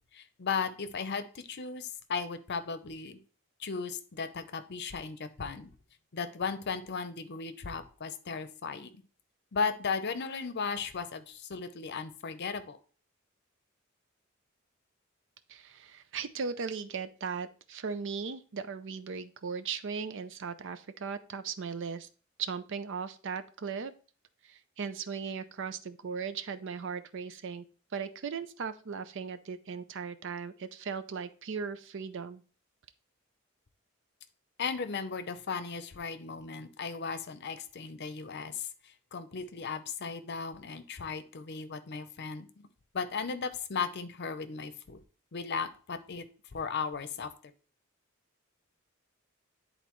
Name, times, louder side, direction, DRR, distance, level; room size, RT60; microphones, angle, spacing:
voice 1, 0.1-3.2 3.6-5.7 6.1-8.9 9.5-12.8 34.6-38.7 39.1-42.5 42.9-45.0 45.3-46.2 46.5-47.3, left 5 dB, 55° left, 11 dB, 0.7 m, -36 dB
voice 2, 15.5-22.1 22.4-23.9 24.4-27.6 27.9-32.4, right 5 dB, 65° right, 12 dB, 0.5 m, -37 dB
10.5 x 3.9 x 3.1 m, 0.38 s
head